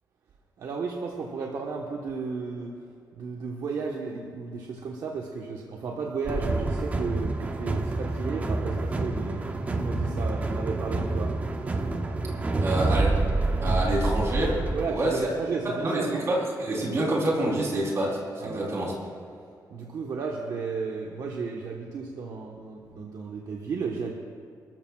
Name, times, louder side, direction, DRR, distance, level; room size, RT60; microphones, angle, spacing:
voice 1, 0.6-12.0 14.7-16.3 18.4-18.8 19.7-24.1, right 4 dB, 60° right, -1 dB, 1.2 m, -34 dB
sound 1, 6.2-14.9, right 2 dB, 20° right, 0.7 m, -27 dB
voice 2, 12.6-13.2 13.6-14.6 14.9-15.2 15.6-18.9, right 1 dB, 40° right, -3 dB, 3.6 m, -27 dB
28.0 x 14.0 x 2.4 m, 2.4 s
wide cardioid pair, 180°, 7 cm